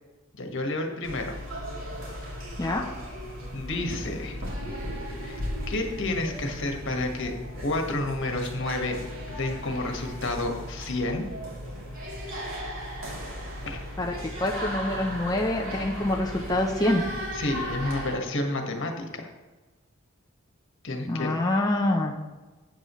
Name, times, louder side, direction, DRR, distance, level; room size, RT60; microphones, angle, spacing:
voice 1, 0.4-1.4 3.5-4.4 5.2-5.4 5.7-7.3 7.6-9.0 9.3-11.2 13.7-13.8 17.3-19.0 20.8-21.3, left 2 dB, 65° left, 3 dB, 1.6 m, -30 dB
sound 1, 1.0-18.1, equal, 80° right, 3.1 m, -36 dB
voice 2, 14.0-17.0 21.1-22.1, left 1 dB, 20° left, 0 dB, 0.7 m, -26 dB
12.0 x 9.2 x 3.1 m, 1.2 s
head